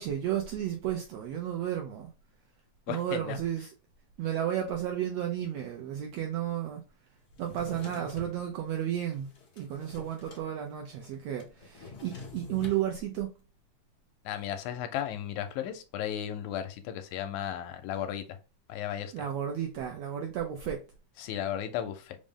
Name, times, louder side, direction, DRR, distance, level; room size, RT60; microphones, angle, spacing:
voice 1, 0.0-2.1 2.9-3.7 4.2-6.8 7.4-9.3 9.6-13.3 19.1-20.8, right 10 dB, 85° right, 1.4 m, -33 dB
voice 2, 2.9-3.4 14.3-18.2 18.7-19.1 21.2-22.2, left 10 dB, 85° left, 2.0 m, -35 dB
Drawer open or close, 7.3-8.4 9.0-10.5 10.7-10.8 11.0-12.8, left 3 dB, 50° left, 1.3 m, -45 dB
5.0 x 2.0 x 3.6 m
omnidirectional pair, 3.5 m